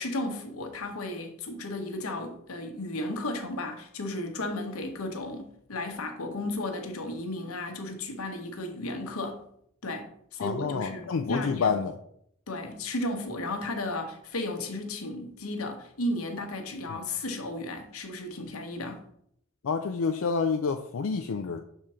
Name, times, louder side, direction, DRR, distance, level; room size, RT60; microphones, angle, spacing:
voice 1, 0.0-9.4 9.8-11.8 12.5-19.0, left 2 dB, 90° left, 1.1 m, -34 dB
voice 2, 10.4-11.9 16.9-17.0 19.6-21.6, left 5 dB, 70° left, 0.4 m, -28 dB
6.6 x 3.7 x 4.3 m
head